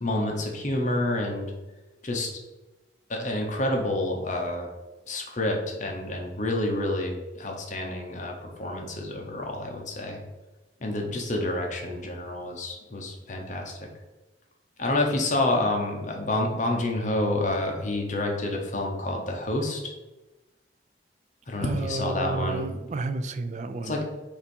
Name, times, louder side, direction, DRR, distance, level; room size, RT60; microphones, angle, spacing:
voice 1, 0.0-1.5 2.0-2.3 3.1-4.7 5.1-10.2 10.8-13.7 14.8-19.9 21.5-22.6 23.8-24.1, left 1 dB, 45° left, 1 dB, 0.9 m, -28 dB
voice 2, 21.6-24.0, right 3 dB, 40° right, 10 dB, 0.4 m, -31 dB
7.0 x 2.7 x 5.3 m, 1.1 s
head